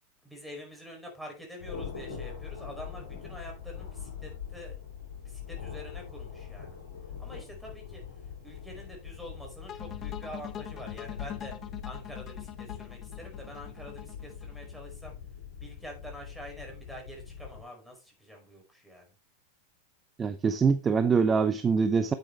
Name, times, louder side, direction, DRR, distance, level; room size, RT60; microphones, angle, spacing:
voice 1, 0.2-4.8 5.2-6.8 7.2-8.0 8.4-11.5 11.8-15.2 15.6-19.1, equal, ahead, 4.9 m, -46 dB
Thunder, 1.6-17.6, left 7 dB, 65° left, 6.7 m, -42 dB
sound 1, 9.7-14.8, left 11 dB, 30° left, 1.0 m, -43 dB
voice 2, 20.2-22.1, right 5 dB, 20° right, 0.7 m, -24 dB
9.7 x 8.0 x 3.2 m
figure-of-eight pair, 90°, 0 cm